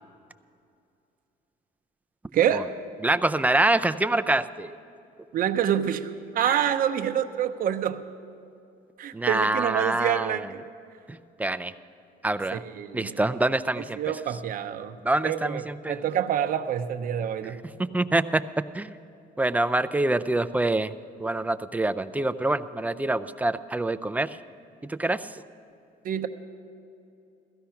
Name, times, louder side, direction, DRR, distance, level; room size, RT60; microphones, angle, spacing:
voice 1, 2.3-2.8 5.3-8.0 9.0-10.6 12.5-13.2 14.0-15.0 15.2-17.6 26.0-26.3, right 10 dB, 55° right, 8 dB, 0.8 m, -27 dB
voice 2, 3.0-4.7 6.5-6.6 9.1-10.4 11.1-11.7 12.2-12.6 12.9-14.0 15.0-16.0 17.9-18.4 18.7-18.9 19.4-20.9 21.2-24.4 24.9-25.3, right 2 dB, 10° right, 12 dB, 0.4 m, -25 dB
16.0 x 14.5 x 5.8 m, 2.5 s
cardioid pair, 110°, 17 cm